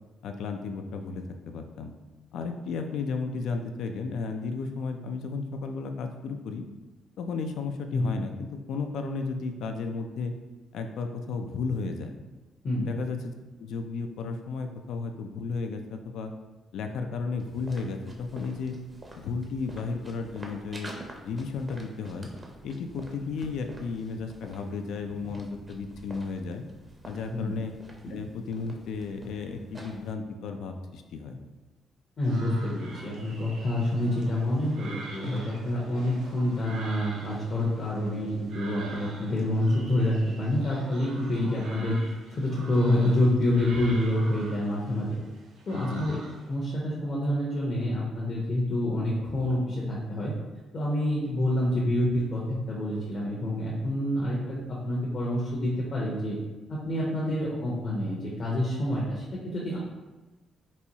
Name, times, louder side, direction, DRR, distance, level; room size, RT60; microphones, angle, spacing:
voice 1, 0.2-1.9 2.3-6.6 7.2-10.3 10.7-12.2 12.8-16.3 16.7-18.8 19.2-20.9 21.2-22.3 22.6-26.6 27.0-27.7 28.1-31.4 45.7-46.2, left 4 dB, 80° left, 6 dB, 0.3 m, -34 dB
sound 1, 17.4-30.1, right 1 dB, 25° right, 0.6 m, -47 dB
voice 2, 32.2-45.2 45.7-46.2 46.5-50.3 50.7-56.4 56.7-59.8, left 1 dB, 45° left, -5 dB, 0.7 m, -27 dB
sound 2, 32.2-46.5, right 2 dB, 80° right, 0.5 m, -45 dB
4.0 x 2.3 x 2.8 m, 1.2 s
cardioid pair, 90°, 0 cm